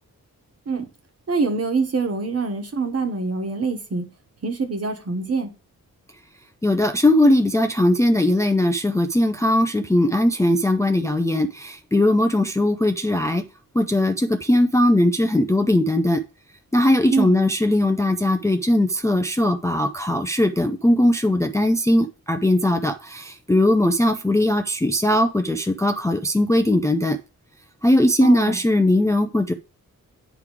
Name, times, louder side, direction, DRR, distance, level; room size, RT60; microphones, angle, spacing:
voice 1, 1.3-4.0 4.4-5.5 17.1-17.3 28.2-28.6, right 4 dB, 45° right, 1.5 m, -24 dB
voice 2, 6.6-13.4 13.7-16.2 16.7-27.2 27.8-29.5, left 1 dB, 10° left, 0.5 m, -19 dB
9.9 x 3.4 x 4.8 m
wide cardioid pair, 120°, 34 cm